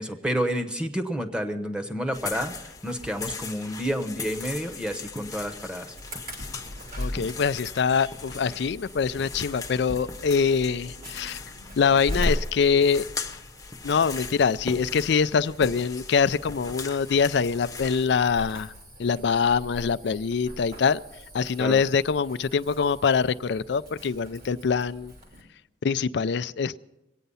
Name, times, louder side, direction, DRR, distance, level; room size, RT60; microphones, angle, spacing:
voice 1, 0.0-2.5 2.8-5.9 21.6-21.8, equal, 5° right, 1.1 m, -29 dB
sound 1, 2.1-18.1, left 4 dB, 20° left, 0.9 m, -39 dB
Insect / Alarm, 6.0-25.4, equal, 55° right, 3.1 m, -39 dB
voice 2, 7.0-11.4 11.8-13.0 13.8-18.7 19.0-21.0 21.3-25.1 25.8-26.8, left 6 dB, 70° left, 0.4 m, -24 dB
23.0 x 9.2 x 5.5 m
head